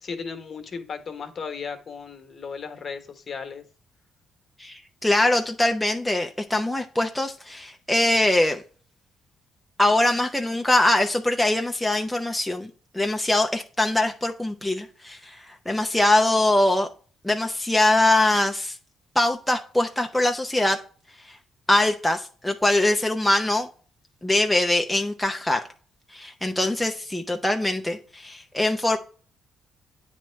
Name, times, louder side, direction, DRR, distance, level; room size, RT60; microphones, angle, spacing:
voice 1, 0.0-3.6, left 5 dB, 45° left, 1.2 m, -35 dB
voice 2, 4.6-8.6 9.8-16.9 17.2-18.8 19.2-20.8 21.3-21.4 21.7-23.7 24.2-25.6 26.1-29.0, left 1 dB, 5° left, 0.7 m, -22 dB
9.0 x 3.2 x 4.5 m
cardioid pair, 90°, 0 cm